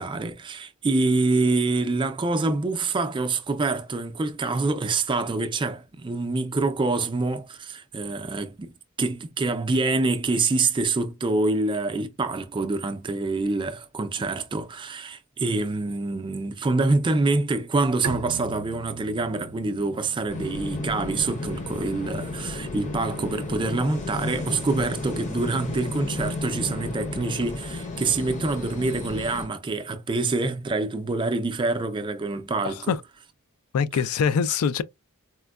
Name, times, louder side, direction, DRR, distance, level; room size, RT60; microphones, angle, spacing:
voice 1, 0.0-32.9, right 3 dB, 20° right, 0.4 m, -26 dB
Bowed string instrument, 18.0-23.6, right 4 dB, 90° right, 0.5 m, -40 dB
sound 1, 20.3-29.5, left 2 dB, 35° left, 0.6 m, -33 dB
voice 2, 32.6-33.0 33.7-34.8, left 6 dB, 75° left, 0.3 m, -24 dB
4.3 x 2.1 x 2.3 m
head